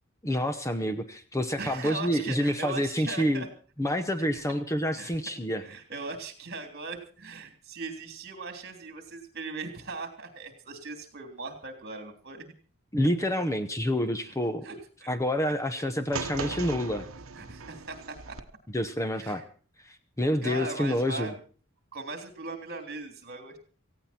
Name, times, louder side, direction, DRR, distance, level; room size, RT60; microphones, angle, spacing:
voice 1, 0.2-3.5 3.8-5.6 12.9-14.7 15.1-17.1 18.7-19.4 19.8-21.3, equal, 15° left, 9 dB, 1.0 m, -28 dB
voice 2, 1.6-3.5 4.2-4.4 5.0-5.1 5.6-12.5 14.3-14.4 14.6-14.7 15.0-15.2 16.1-16.2 17.3-18.2 19.2-19.4 20.4-21.3 21.9-23.6, right 3 dB, 45° right, 6 dB, 3.3 m, -39 dB
sound 1, 16.1-18.4, right 4 dB, 65° right, 1.1 m, -37 dB
18.0 x 16.0 x 4.4 m, 0.40 s
head